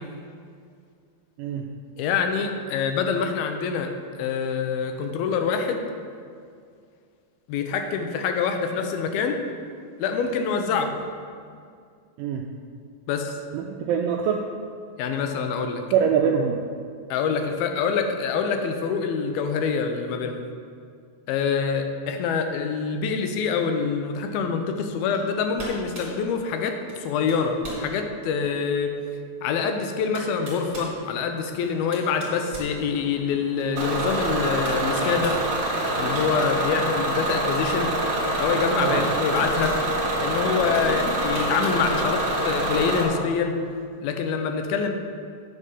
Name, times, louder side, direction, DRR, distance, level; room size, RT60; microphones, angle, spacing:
voice 1, 1.4-1.7 12.2-12.5 13.5-14.5 15.9-16.6 38.8-39.0, right 7 dB, 85° right, 1 dB, 2.0 m, -24 dB
voice 2, 2.0-3.9 4.2-5.8 7.5-9.4 10.0-10.9 13.1-13.4 15.0-15.8 17.1-20.4 21.3-28.9 29.4-35.4 36.0-37.9 38.4-39.7 40.2-43.6 44.0-44.9, left 6 dB, 80° left, 5 dB, 2.5 m, -25 dB
sound 1, 25.1-25.3 25.6-26.2 26.9-27.0 27.3-27.9 28.4-28.5 29.6-29.7 30.1-30.9 31.6-33.3 34.6-35.4 35.9-36.5 36.8-37.0 38.4-38.5 39.0-39.8 40.7-41.8, right 1 dB, 25° right, 2.4 m, -38 dB
sound 2, 31.6-43.2, left 1 dB, 35° left, 2.1 m, -44 dB
Bus / Engine, 33.8-43.0, right 1 dB, 55° right, 1.2 m, -25 dB
9.8 x 4.9 x 6.7 m, 2.2 s
omnidirectional pair, 4.6 m